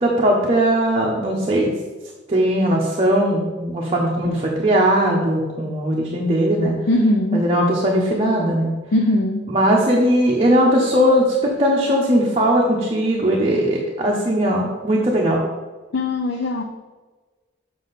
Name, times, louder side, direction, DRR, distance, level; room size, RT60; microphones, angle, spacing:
voice 1, 0.0-1.7 2.3-6.7 7.3-8.7 9.5-15.4, equal, 30° right, -3 dB, 0.9 m, -19 dB
voice 2, 6.9-7.4 8.9-9.5 15.9-16.6, left 1 dB, 65° left, 4 dB, 0.5 m, -20 dB
7.4 x 5.4 x 4.1 m, 1.3 s
head